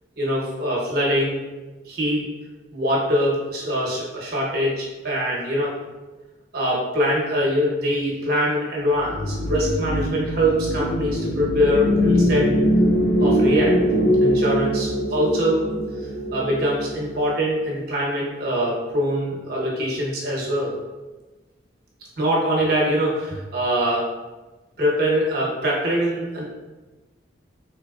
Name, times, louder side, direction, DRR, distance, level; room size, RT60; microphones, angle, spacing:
voice 1, 0.2-1.4 1.8-2.2 2.7-5.7 6.5-12.5 13.2-13.8 14.2-15.6 16.3-20.8 22.2-24.0 24.8-26.4, equal, 55° right, -4 dB, 0.9 m, -23 dB
sound 1, 9.0-17.3, equal, 80° left, 0.5 m, -22 dB
3.9 x 3.4 x 2.3 m, 1.2 s
head